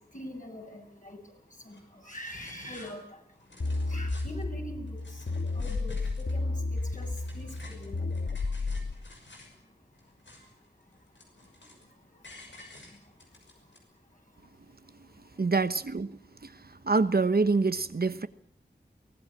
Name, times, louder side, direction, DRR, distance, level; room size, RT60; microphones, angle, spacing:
voice 1, 0.1-1.2 1.6-3.2 3.9-5.2 5.6-6.5 6.9-7.1 7.3-8.1, equal, 45° left, 7.5 m, -43 dB
sound 1, 1.7-1.8 2.1-2.9 3.3-4.5 4.9-6.4 6.7-9.6 9.9-10.7 10.9-11.9 12.2-13.8, left 2 dB, 90° left, 6.0 m, -52 dB
sound 2, 3.6-8.9, left 3 dB, 70° left, 1.5 m, -32 dB
voice 2, 15.4-16.5 16.8-18.3, right 4 dB, 55° right, 1.0 m, -26 dB
23.5 x 18.5 x 8.5 m
wide cardioid pair, 65°, 18 cm